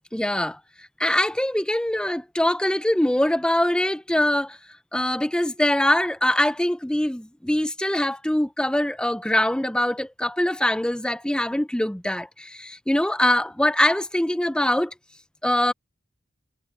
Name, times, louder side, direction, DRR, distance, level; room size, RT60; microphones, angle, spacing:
voice 1, 0.1-4.6 4.9-14.9 15.4-15.7, left 1 dB, 5° left, 0.5 m, -23 dB
head